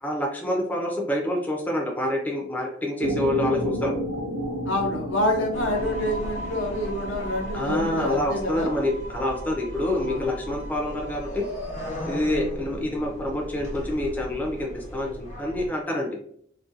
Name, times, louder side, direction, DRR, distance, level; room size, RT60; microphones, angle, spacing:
voice 1, 0.0-3.9 7.5-11.4 12.1-15.1 15.4-16.2, left 1 dB, 10° left, -1 dB, 0.4 m, -27 dB
sound 1, 3.0-8.1, right 1 dB, 65° right, 0.4 m, -31 dB
voice 2, 4.7-8.7 9.9-10.3, left 1 dB, 70° left, 2 dB, 0.6 m, -27 dB
sound 2, 5.5-15.7, equal, 40° left, 0.8 m, -36 dB
2.4 x 2.2 x 2.6 m, 0.65 s
head